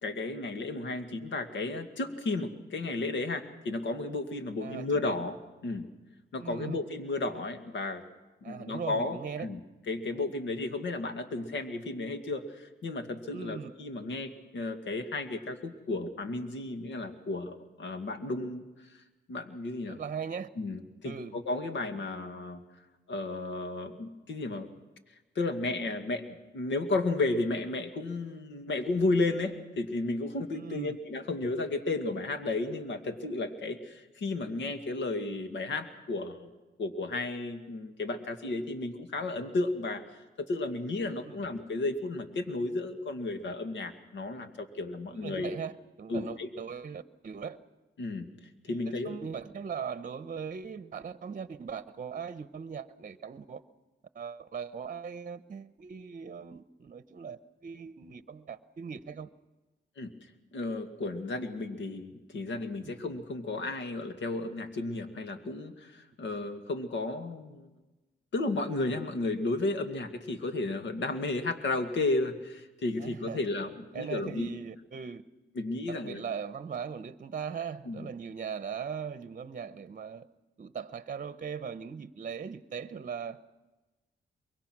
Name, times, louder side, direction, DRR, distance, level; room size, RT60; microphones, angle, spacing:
voice 1, 0.0-5.4 5.6-5.9 6.3-8.0 8.4-9.6 9.9-19.0 19.3-20.0 20.6-22.6 23.1-24.7 25.4-36.5 36.8-40.0 40.4-45.5 46.1-46.5 48.0-48.3 48.6-49.2 60.0-60.1 60.5-67.7 68.3-74.5 75.6-76.2 77.9-78.1, left 2 dB, 70° left, 2.1 m, -33 dB
voice 2, 4.6-5.1 6.4-6.8 8.4-9.5 13.3-13.7 19.9-20.5 21.0-21.4 30.5-31.0 41.2-41.4 45.1-47.6 48.7-53.6 54.1-59.3 73.0-73.4 73.9-75.2 75.9-80.3 80.6-83.4, right 6 dB, 40° right, 0.9 m, -39 dB
24.0 x 22.0 x 6.1 m
cardioid pair, 80°, 20 cm